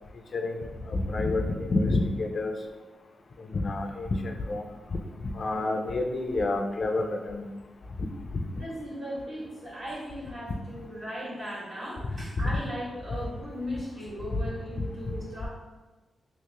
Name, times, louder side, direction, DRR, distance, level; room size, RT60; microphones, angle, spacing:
voice 1, 0.3-2.5 3.5-4.6 4.9-5.0 5.4-7.5 8.3-8.4 12.0-12.5, left 2 dB, 45° left, 4 dB, 0.4 m, -28 dB
voice 2, 8.5-15.5, equal, 50° right, -8 dB, 1.5 m, -37 dB
2.9 x 2.9 x 3.4 m, 1.2 s
wide cardioid pair, 125°, 0 cm